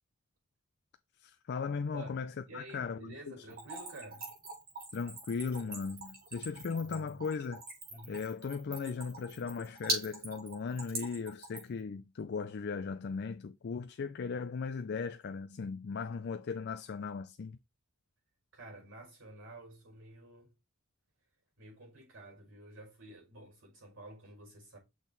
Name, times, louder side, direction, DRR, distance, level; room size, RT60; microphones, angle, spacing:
voice 1, 1.2-3.4 4.9-7.6 8.1-17.6, left 5 dB, 55° left, 0.4 m, -37 dB
voice 2, 1.9-4.3 6.8-7.2 7.9-8.3 18.5-20.5 21.6-24.8, right 2 dB, 65° right, 4.3 m, -51 dB
Splash splatter / Trickle dribble, 3.5-11.8, right 2 dB, 45° right, 4.2 m, -41 dB
6.4 x 3.7 x 3.9 m
head